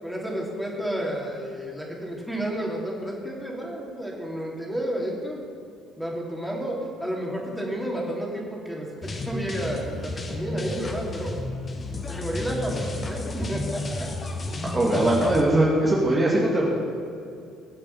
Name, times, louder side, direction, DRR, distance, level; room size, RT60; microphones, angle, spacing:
voice 1, 0.0-5.4 6.0-11.4 12.1-13.8, right 1 dB, ahead, -3 dB, 3.6 m, -31 dB
sound 1, 9.0-15.4, left 2 dB, 35° left, 1.6 m, -32 dB
voice 2, 14.7-16.7, right 1 dB, 25° right, -4 dB, 2.5 m, -20 dB
20.5 x 7.4 x 5.7 m, 2.5 s
hypercardioid pair, 55°, 0 cm